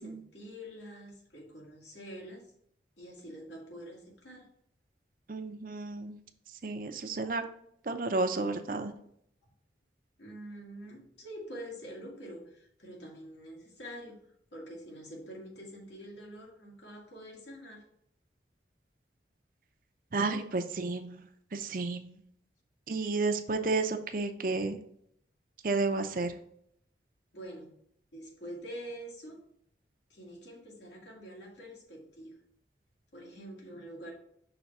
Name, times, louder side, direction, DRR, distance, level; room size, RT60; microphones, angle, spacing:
voice 1, 0.0-2.5 3.0-4.5 10.2-14.2 14.5-17.8 27.3-27.7 28.1-29.4 30.1-32.4 33.1-34.1, equal, 80° left, -2 dB, 2.2 m, -46 dB
voice 2, 5.3-6.2 6.6-7.4 7.8-8.9 20.1-21.2 21.5-22.2 22.9-24.8 25.6-26.3, right 3 dB, 50° right, 7 dB, 0.6 m, -32 dB
5.9 x 3.4 x 5.3 m, 0.69 s
head